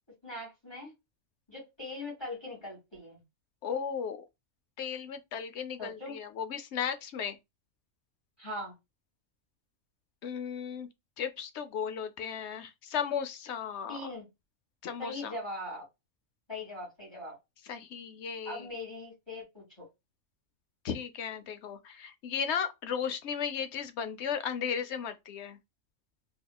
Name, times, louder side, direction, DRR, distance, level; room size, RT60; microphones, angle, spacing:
voice 1, 0.2-0.9 1.5-3.2 5.8-6.2 8.4-8.7 13.9-14.3 15.0-15.8 16.5-17.4 18.5-19.9, left 1 dB, 20° left, 2.3 m, -40 dB
voice 2, 3.6-4.2 4.8-7.4 10.2-10.9 11.2-14.0 14.8-15.4 17.6-18.7 20.8-25.6, left 7 dB, 70° left, 0.9 m, -35 dB
3.9 x 2.9 x 2.3 m
omnidirectional pair, 1.2 m